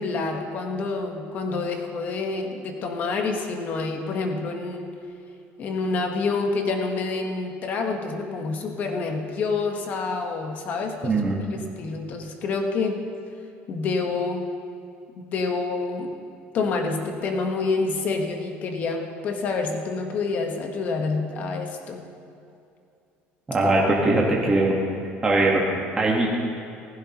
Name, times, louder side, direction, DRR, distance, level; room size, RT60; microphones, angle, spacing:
voice 1, 0.0-4.9 5.6-11.2 11.5-13.0 13.7-14.5 15.3-16.2 16.5-22.1, left 4 dB, 35° left, 4 dB, 1.1 m, -27 dB
voice 2, 11.0-11.3 23.5-24.8 25.2-25.6 26.0-26.3, right 2 dB, 15° right, -3 dB, 1.2 m, -20 dB
15.5 x 15.0 x 2.9 m, 2.6 s
cardioid pair, 175°, 5 cm